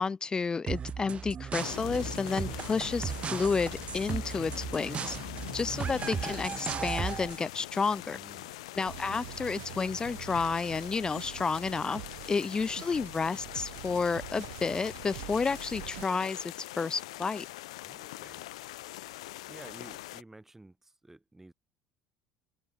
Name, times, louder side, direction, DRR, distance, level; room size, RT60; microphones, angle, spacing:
voice 1, 0.0-5.2 5.5-8.2 8.7-17.5, left 4 dB, 25° left, 0.6 m, -31 dB
sound 1, 0.7-7.4, right 7 dB, 35° right, 1.1 m, -36 dB
sound 2, 1.6-20.2, left 17 dB, 80° left, 0.6 m, -43 dB
voice 2, 8.1-8.6 17.8-18.4 19.5-21.5, right 2 dB, 10° right, 2.5 m, -52 dB
sound 3, 8.8-16.0, right 26 dB, 75° right, 6.2 m, -46 dB
hypercardioid pair, 70°, 3 cm